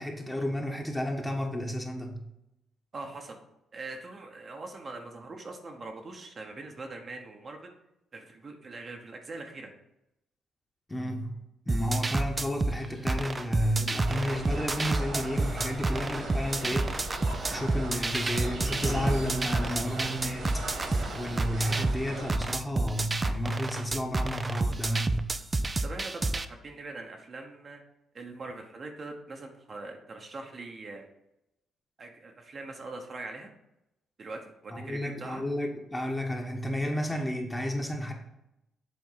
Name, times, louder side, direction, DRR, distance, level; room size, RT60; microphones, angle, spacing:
voice 1, 0.0-2.2 10.9-11.4 11.7-16.9 17.5-20.8 21.1-25.2 34.7-38.1, equal, 10° left, 2 dB, 1.2 m, -32 dB
voice 2, 2.9-3.4 3.7-7.7 8.1-9.7 16.3-16.4 25.8-27.8 28.1-31.1 32.0-33.5 34.2-35.4, right 3 dB, 40° right, 3 dB, 1.0 m, -42 dB
sound 1, 11.7-26.5, right 2 dB, 25° right, 0.4 m, -30 dB
sound 2, 14.1-22.4, right 2 dB, 55° right, 1.7 m, -38 dB
7.6 x 3.5 x 5.7 m, 0.86 s
cardioid pair, 90°, 0 cm